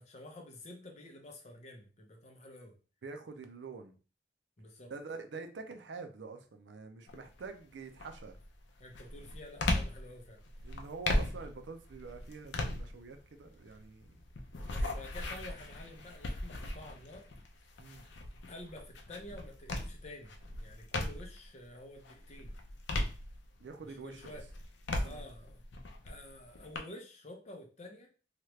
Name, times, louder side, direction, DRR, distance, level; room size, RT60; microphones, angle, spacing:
voice 1, 0.0-2.7 4.6-4.9 8.8-10.4 14.5-17.3 18.5-22.5 23.8-24.4 25.0-25.6 26.0-28.1, left 1 dB, 40° left, 2 dB, 0.7 m, -50 dB
voice 2, 3.0-3.9 4.9-8.4 10.6-14.2 14.6-14.9 17.8-18.0 23.6-24.4 25.0-25.2, right 4 dB, 70° right, 7 dB, 0.5 m, -46 dB
sound 1, 7.1-7.5 8.0-21.5 21.9-23.8 24.2-26.8, left 1 dB, 75° left, 0.5 m, -38 dB
2.9 x 2.3 x 3.1 m, 0.37 s
head